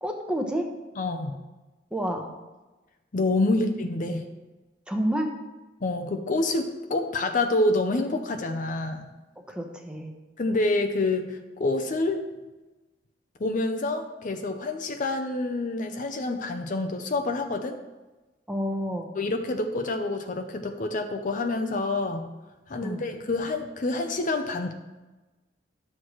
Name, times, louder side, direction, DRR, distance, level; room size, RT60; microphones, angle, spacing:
voice 1, 0.0-0.7 1.9-2.3 4.9-5.3 9.5-10.1 18.5-19.1 22.8-23.0, equal, 5° right, 2 dB, 0.9 m, -29 dB
voice 2, 1.0-1.4 3.1-4.3 5.8-9.1 10.4-12.2 13.4-17.8 19.2-22.3 22.7-24.7, left 2 dB, 45° left, 6 dB, 0.6 m, -27 dB
11.0 x 6.5 x 3.1 m, 1.1 s
head